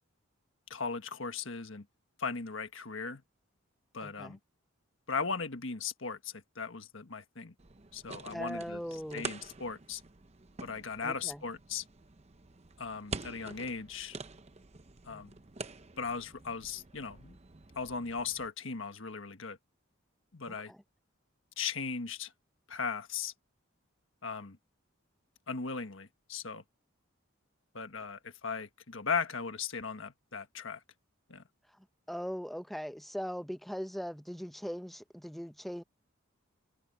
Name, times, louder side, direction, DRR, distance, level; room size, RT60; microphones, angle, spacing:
voice 1, 0.7-1.8 2.2-3.2 3.9-4.4 5.1-7.5 7.9-8.8 9.1-10.0 10.6-11.8 12.8-14.2 15.0-15.3 16.0-17.3 17.7-19.6 20.3-20.7 21.6-22.3 22.7-23.3 24.2-24.6 25.5-26.6 27.7-30.8 31.3-31.4, left 5 dB, 65° left, 1.5 m, -37 dB
voice 2, 4.0-4.4 8.3-9.3 11.0-11.4 15.1-15.2 20.5-20.8 32.1-35.8, equal, ahead, 0.7 m, -40 dB
sound 1, 7.6-18.5, right 4 dB, 30° right, 0.8 m, -47 dB
head